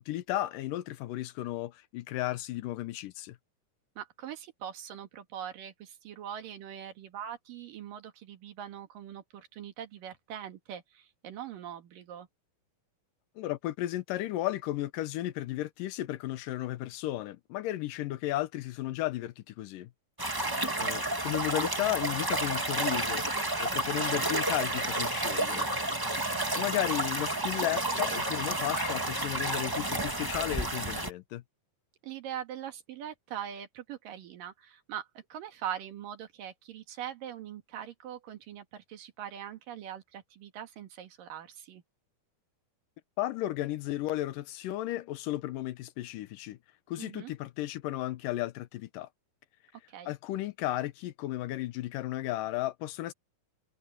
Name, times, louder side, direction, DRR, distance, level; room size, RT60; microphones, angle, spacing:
voice 1, 0.0-3.4 13.4-19.9 20.8-23.2 23.6-25.7 26.5-31.4 43.2-46.6 46.9-49.1 50.1-53.1, left 15 dB, 80° left, 2.5 m, -34 dB
voice 2, 4.0-12.3 20.5-20.9 26.3-26.6 32.0-41.8 47.0-47.3 49.9-50.1, right 10 dB, 85° right, 3.5 m, -42 dB
sound 1, 20.2-31.1, right 2 dB, 20° right, 0.6 m, -31 dB
omnidirectional pair, 3.8 m